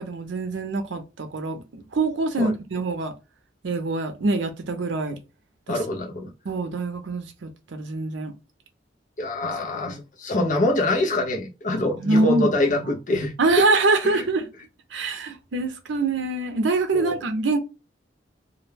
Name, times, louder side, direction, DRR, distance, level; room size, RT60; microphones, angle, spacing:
voice 1, 0.0-3.1 3.6-5.2 5.7-5.8 6.5-8.3 9.9-10.0 12.0-12.5 13.4-14.5 14.9-17.6, right 3 dB, 80° right, 0.6 m, -24 dB
voice 2, 5.7-6.3 9.2-13.3 14.0-14.2 16.9-17.2, left 2 dB, 45° left, 0.6 m, -25 dB
2.3 x 2.1 x 3.2 m
head